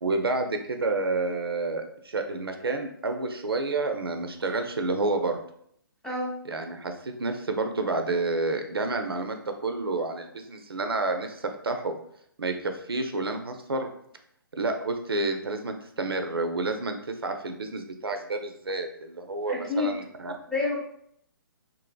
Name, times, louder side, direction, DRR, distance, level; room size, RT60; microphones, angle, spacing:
voice 1, 0.0-5.4 6.5-11.9 12.4-13.9 14.6-20.4, right 3 dB, 85° right, 6 dB, 0.4 m, -29 dB
voice 2, 6.0-6.4 19.5-19.9 20.5-20.8, left 3 dB, 5° left, -5 dB, 0.6 m, -28 dB
2.8 x 2.6 x 2.2 m, 0.68 s
figure-of-eight pair, 135°, 12 cm